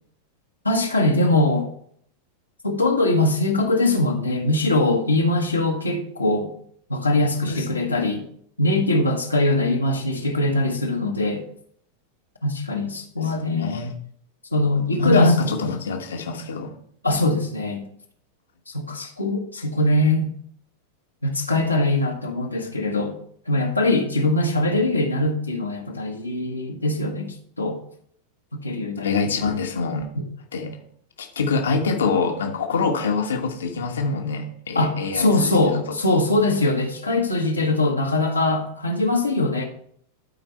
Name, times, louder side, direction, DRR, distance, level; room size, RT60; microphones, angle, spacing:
voice 1, 0.6-1.7 2.6-6.5 6.9-8.2 8.6-11.4 12.4-13.7 14.5-15.5 17.0-17.8 18.7-20.3 21.2-23.2 23.5-27.8 28.5-29.3 30.1-30.2 34.7-39.6, left 2 dB, 85° left, 0 dB, 1.2 m, -22 dB
voice 2, 7.4-8.0 13.2-14.0 15.0-16.8 29.0-30.1 30.5-30.8 31.2-35.8, left 3 dB, 65° left, 3 dB, 1.1 m, -25 dB
13.0 x 4.4 x 4.4 m, 0.64 s
figure-of-eight pair, 90°, 0 cm